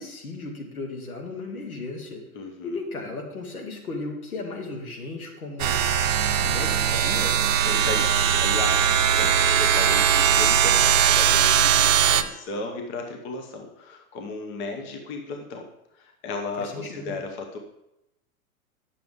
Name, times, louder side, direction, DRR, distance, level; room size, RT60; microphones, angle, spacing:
voice 1, 0.0-2.2 2.6-5.9 6.4-7.4 16.6-17.1, left 3 dB, 75° left, 1 dB, 2.1 m, -35 dB
voice 2, 2.3-2.8 7.6-15.7 15.9-17.6, left 3 dB, 25° left, 3 dB, 1.0 m, -35 dB
sound 1, 5.6-12.2, right 8 dB, 60° right, 0.7 m, -20 dB
9.1 x 6.8 x 3.7 m, 0.85 s
figure-of-eight pair, 105°, 43 cm